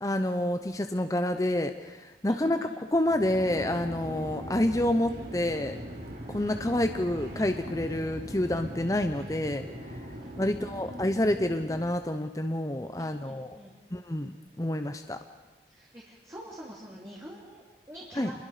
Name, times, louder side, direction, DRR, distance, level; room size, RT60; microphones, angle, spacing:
voice 1, 0.0-5.8 6.3-9.6 10.4-13.6 13.9-15.2 18.1-18.3, left 1 dB, 20° left, 7 dB, 0.8 m, -28 dB
voice 2, 2.3-2.8 10.1-11.6 13.0-13.7 15.7-18.3, equal, 15° right, -5 dB, 3.1 m, -47 dB
sound 1, 3.0-12.0, equal, 65° right, 5.6 m, -41 dB
28.5 x 21.5 x 5.0 m, 1.1 s
head